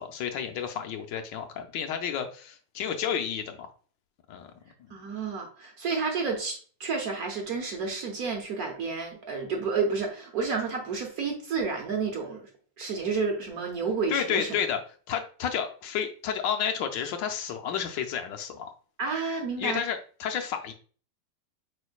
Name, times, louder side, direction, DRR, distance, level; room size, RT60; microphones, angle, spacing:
voice 1, 0.0-3.7 4.3-4.5 4.8-4.9 14.1-14.8 15.1-18.7 19.6-20.7, left 8 dB, 75° left, 5 dB, 1.3 m, -31 dB
voice 2, 4.9-12.5 12.8-14.5 19.0-19.8, right 4 dB, 55° right, 2 dB, 1.2 m, -30 dB
5.3 x 4.3 x 2.3 m, 0.40 s
omnidirectional pair, 2.1 m